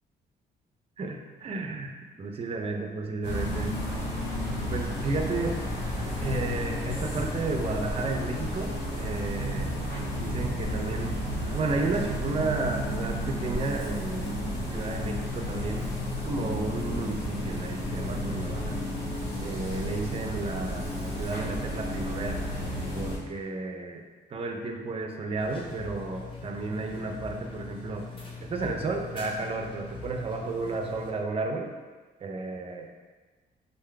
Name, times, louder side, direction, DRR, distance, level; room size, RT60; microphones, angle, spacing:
voice 1, 1.0-1.9 2.2-3.8 4.7-5.6 6.2-9.7 10.2-11.2 11.5-14.4 14.7-15.9 16.2-18.8 19.1-22.4 22.9-24.0 24.3-28.0 28.4-31.7 32.2-32.9, right 3 dB, 35° right, 3 dB, 0.5 m, -32 dB
sound 1, 3.2-23.2, equal, 90° left, 1.3 m, -32 dB
sound 2, 25.4-31.1, left 4 dB, 30° left, 0.7 m, -42 dB
4.0 x 3.6 x 3.3 m, 1.3 s
cardioid pair, 135°, 17 cm